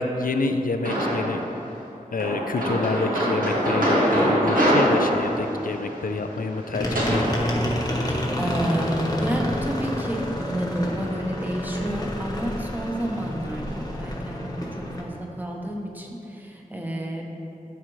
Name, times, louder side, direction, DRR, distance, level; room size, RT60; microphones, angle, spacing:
voice 1, 0.0-1.4 2.1-7.2, left 3 dB, 75° left, 6 dB, 0.5 m, -28 dB
sound 1, 0.9-1.5 2.2-7.3, equal, 70° right, 1.8 m, -23 dB
sound 2, 6.7-15.0, equal, 25° left, 1.1 m, -29 dB
voice 2, 8.0-17.2, equal, 10° right, -1 dB, 1.1 m, -30 dB
12.5 x 5.0 x 3.2 m, 2.9 s
wide cardioid pair, 55°, 15 cm